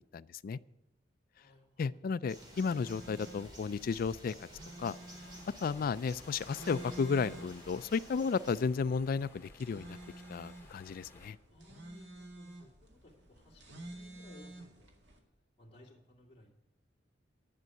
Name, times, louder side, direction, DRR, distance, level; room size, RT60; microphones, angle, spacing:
voice 1, 0.1-0.6 1.8-4.3 4.8-5.0 5.6-10.0 10.3-11.4, left 5 dB, 55° left, 16 dB, 0.3 m, -33 dB
voice 2, 1.3-1.7 5.7-5.9 11.5-15.1 15.6-16.6, left 1 dB, 35° left, -3 dB, 2.5 m, -59 dB
sound 1, 2.2-15.2, right 1 dB, 75° right, 1.9 m, -51 dB
sound 2, 2.3-8.6, equal, 25° right, 2.9 m, -53 dB
sound 3, 5.2-11.3, left 2 dB, 15° left, 2.2 m, -56 dB
11.0 x 6.4 x 9.1 m, 0.90 s
head